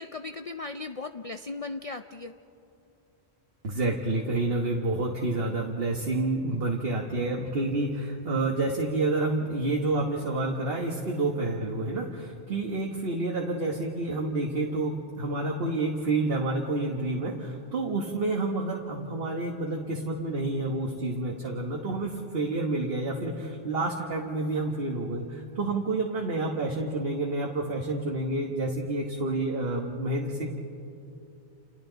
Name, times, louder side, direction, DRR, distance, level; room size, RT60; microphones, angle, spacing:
voice 1, 0.0-2.3, left 3 dB, 45° left, 8 dB, 0.5 m, -37 dB
voice 2, 3.6-30.5, right 2 dB, 60° right, 0 dB, 1.6 m, -29 dB
30.0 x 29.0 x 4.0 m, 2.8 s
omnidirectional pair, 1.1 m